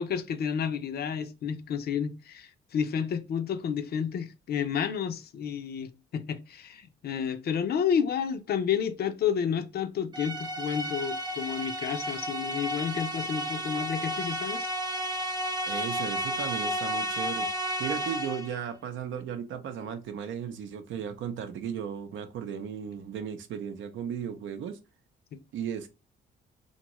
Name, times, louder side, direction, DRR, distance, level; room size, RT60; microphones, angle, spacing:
voice 1, 0.0-14.7 25.3-25.4, left 7 dB, 55° left, 0.4 m, -31 dB
sound 1, 10.1-18.6, equal, 20° right, 0.6 m, -32 dB
voice 2, 15.7-17.5 17.8-24.8 25.5-25.9, right 8 dB, 75° right, 0.6 m, -35 dB
2.6 x 2.2 x 2.9 m
cardioid pair, 90°, 20 cm